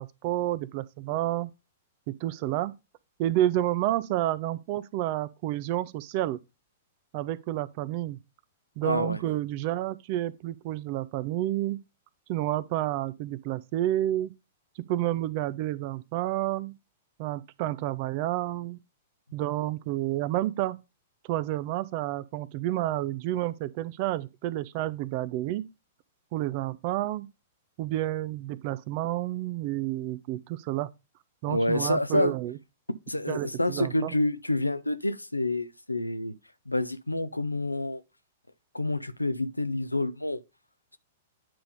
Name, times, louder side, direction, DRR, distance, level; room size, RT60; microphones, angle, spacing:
voice 1, 0.0-1.5 2.1-2.7 3.2-6.4 7.1-8.2 8.8-11.8 12.3-14.3 14.9-16.7 17.2-18.8 19.3-20.8 21.3-25.7 26.3-27.3 27.8-30.9 31.4-32.6 33.3-34.1, right 14 dB, 40° right, 0.5 m, -30 dB
voice 2, 8.8-9.2 31.5-32.3 33.1-36.3 36.7-38.0 38.7-40.4, left 1 dB, 90° left, 0.5 m, -28 dB
8.9 x 3.4 x 5.2 m
figure-of-eight pair, 105°, 0 cm